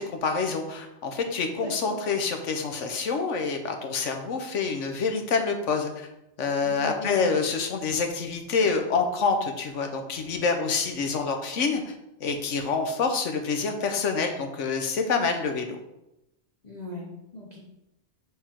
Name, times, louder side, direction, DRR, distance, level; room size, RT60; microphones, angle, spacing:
voice 1, 0.0-6.1 6.4-11.9 12.2-15.8, left 5 dB, 85° left, 5 dB, 1.2 m, -27 dB
voice 2, 1.5-2.0 6.6-7.4 16.6-17.6, left 1 dB, 35° left, -3 dB, 1.0 m, -38 dB
6.7 x 3.6 x 4.5 m, 0.90 s
omnidirectional pair, 1.2 m